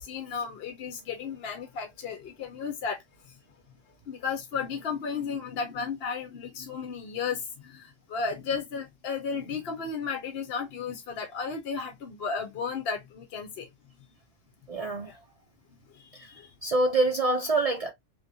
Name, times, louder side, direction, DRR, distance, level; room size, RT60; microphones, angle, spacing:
voice 1, 0.0-3.0 3.3-3.4 4.1-13.7 15.0-15.2 15.9-16.5, left 5 dB, 60° left, 0.9 m, -34 dB
voice 2, 14.7-15.1 16.6-17.9, right 2 dB, 55° right, 0.4 m, -25 dB
3.2 x 3.0 x 2.6 m
omnidirectional pair, 1.3 m